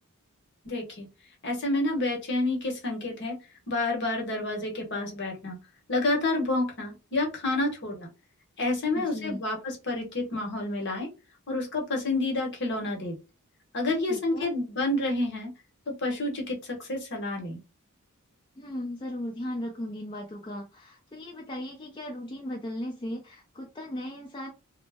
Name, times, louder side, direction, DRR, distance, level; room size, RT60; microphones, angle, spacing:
voice 1, 0.6-1.1 1.4-3.4 3.7-5.6 5.9-8.1 8.6-11.1 11.5-13.1 13.7-15.5 15.9-17.6, left 2 dB, 55° left, 1 dB, 0.9 m, -29 dB
voice 2, 8.9-9.4 14.1-14.5 18.6-24.5, left 1 dB, 20° left, 0 dB, 0.4 m, -37 dB
2.1 x 2.0 x 3.3 m, 0.29 s
head